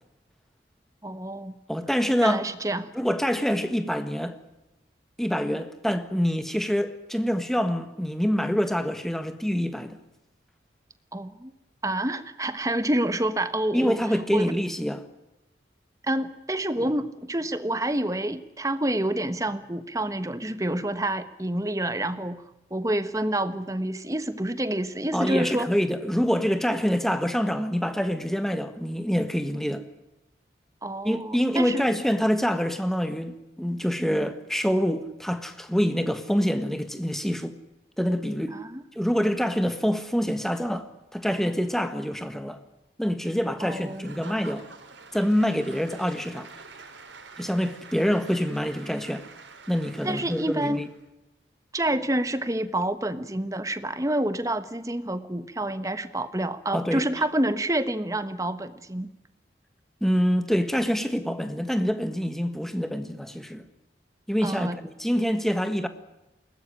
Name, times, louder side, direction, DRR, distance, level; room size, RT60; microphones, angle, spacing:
voice 1, 1.0-1.5 2.2-2.9 11.1-11.5 11.8-14.0 14.3-14.5 16.0-22.4 22.7-25.7 30.8-31.9 38.5-38.8 43.6-44.1 50.0-50.8 51.7-59.1 64.4-64.8, right 1 dB, 20° right, 1.2 m, -28 dB
voice 2, 1.7-2.5 2.9-4.4 5.2-10.0 13.7-15.0 25.1-29.8 31.0-37.6 38.0-38.6 38.9-42.6 43.0-44.7 45.1-46.5 47.4-49.2 49.7-50.9 56.7-57.0 60.0-63.6 64.3-65.9, equal, ahead, 1.5 m, -26 dB
Applause / Crowd, 43.7-51.0, right 4 dB, 90° right, 4.0 m, -47 dB
21.5 x 19.5 x 10.0 m
head